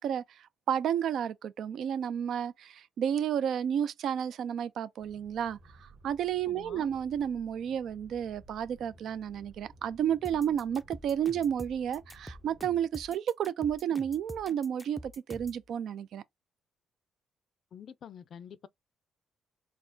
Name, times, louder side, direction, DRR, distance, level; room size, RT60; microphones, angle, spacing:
voice 1, 0.0-16.2, right 9 dB, 70° right, 0.4 m, -32 dB
sound 1, 5.0-12.8, right 2 dB, 50° right, 1.4 m, -57 dB
voice 2, 6.4-6.9 17.7-18.7, left 8 dB, 60° left, 0.4 m, -47 dB
sound 2, 10.2-15.6, equal, ahead, 0.4 m, -46 dB
4.1 x 2.9 x 2.7 m
cardioid pair, 105°, 0 cm